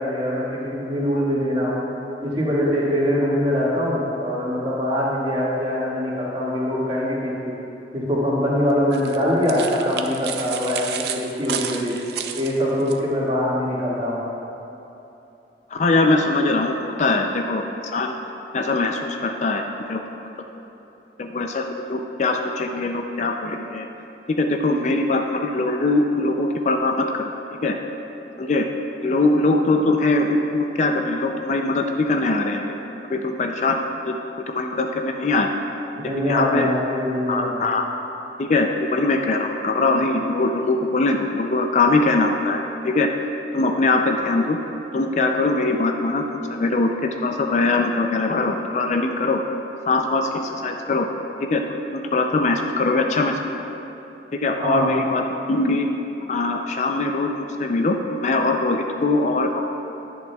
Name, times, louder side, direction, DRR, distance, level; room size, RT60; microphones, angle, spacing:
voice 1, 0.0-1.8 2.2-7.3 7.9-12.0 12.4-14.2 36.0-37.6 54.6-54.9, equal, 30° right, -7 dB, 1.9 m, -23 dB
sound 1, 8.9-13.0, right 8 dB, 65° right, 0.4 m, -31 dB
voice 2, 15.7-18.1 18.5-19.6 19.9-20.0 21.2-23.9 24.4-27.3 27.6-27.7 28.4-28.7 29.0-32.8 33.1-34.2 34.5-35.5 36.2-36.7 37.3-37.8 38.4-43.1 43.5-44.6 44.9-49.4 49.9-51.1 51.4-53.4 54.3-55.9 56.3-59.6, left 2 dB, 40° left, 3 dB, 0.4 m, -22 dB
11.0 x 10.0 x 2.3 m, 2.9 s
head